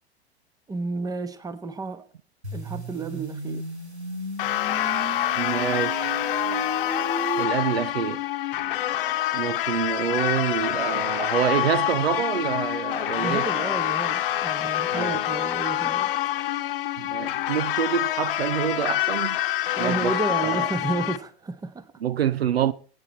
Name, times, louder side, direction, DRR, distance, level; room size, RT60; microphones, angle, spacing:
voice 1, 0.7-2.0 2.5-3.6 13.2-16.1 19.8-21.9, right 3 dB, 10° right, 1.2 m, -31 dB
sound 1, 2.4-7.4, right 2 dB, 85° right, 2.3 m, -34 dB
sound 2, 4.4-21.2, left 14 dB, 55° left, 1.1 m, -26 dB
voice 2, 5.3-6.2 7.4-8.2 9.3-13.5 14.9-15.2 17.0-19.4 19.8-20.2 20.4-20.7 22.0-22.7, right 9 dB, 65° right, 0.7 m, -27 dB
22.0 x 9.0 x 4.4 m
figure-of-eight pair, 90°, 32 cm